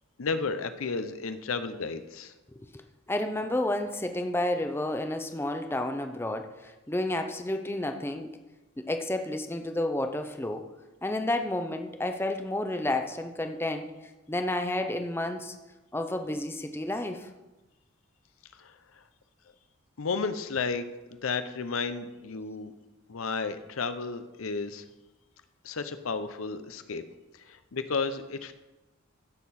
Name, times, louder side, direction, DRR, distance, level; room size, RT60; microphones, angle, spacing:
voice 1, 0.2-2.3 18.5-19.0 20.0-22.7 23.1-24.8 25.6-27.0 27.3-28.5, left 4 dB, 85° left, 11 dB, 0.7 m, -33 dB
voice 2, 3.1-8.3 8.8-10.7 11.0-13.9 14.3-15.5 15.9-17.3, left 1 dB, 10° left, 6 dB, 0.6 m, -31 dB
15.0 x 6.6 x 4.2 m, 1.1 s
head